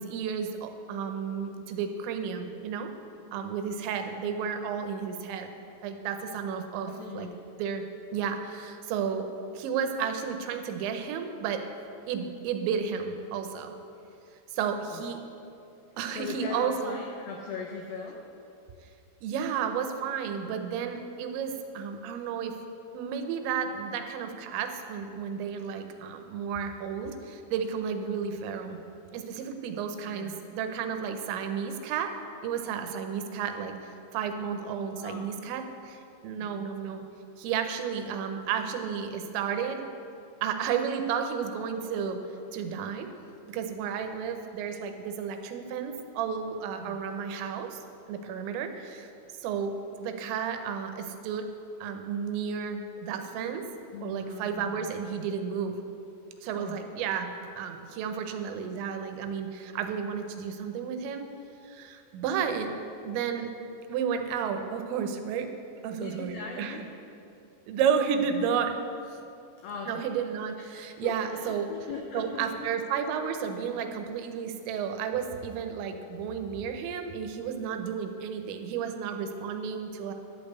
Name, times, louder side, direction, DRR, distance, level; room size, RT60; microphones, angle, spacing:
voice 1, 0.0-2.9 3.3-5.5 5.8-7.3 7.6-7.8 8.1-9.3 9.5-11.6 12.1-13.7 14.5-15.2 16.0-17.0 19.2-22.6 22.9-28.8 29.1-32.1 32.4-37.0 37.4-39.9 40.4-42.2 42.5-43.1 43.5-47.8 48.1-49.1 49.4-51.5 51.8-53.7 54.0-55.8 56.4-61.2 61.6-62.7 63.0-63.5 63.9-65.5 65.8-66.8 67.7-68.8 69.9-71.7 72.1-80.1, right 7 dB, 90° right, 6 dB, 3.1 m, -32 dB
voice 2, 6.9-7.4 14.9-15.1 16.1-18.3 30.0-30.4 35.0-35.3 36.4-36.7 46.8-47.0 53.9-54.9 56.5-56.8 66.0-66.9 69.6-70.1 70.6-72.7, left 4 dB, 90° left, 1 dB, 2.1 m, -40 dB
11.5 x 5.3 x 8.3 m, 2.6 s
omnidirectional pair, 5.1 m